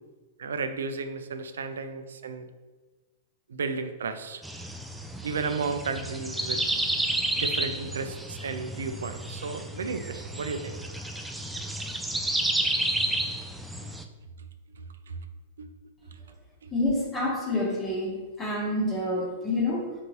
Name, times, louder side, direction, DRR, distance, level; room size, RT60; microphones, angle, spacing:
voice 1, 0.4-2.5 3.5-4.4 5.2-6.6 7.3-10.8 13.8-13.9 15.1-15.2 15.6-15.7, right 4 dB, 75° right, 9 dB, 0.4 m, -33 dB
sound 1, 4.4-14.0, right 1 dB, 5° right, 0.3 m, -31 dB
voice 2, 16.7-19.9, left 1 dB, 20° left, -2 dB, 1.0 m, -28 dB
3.9 x 3.8 x 2.9 m, 1.3 s
hypercardioid pair, 110°, 0 cm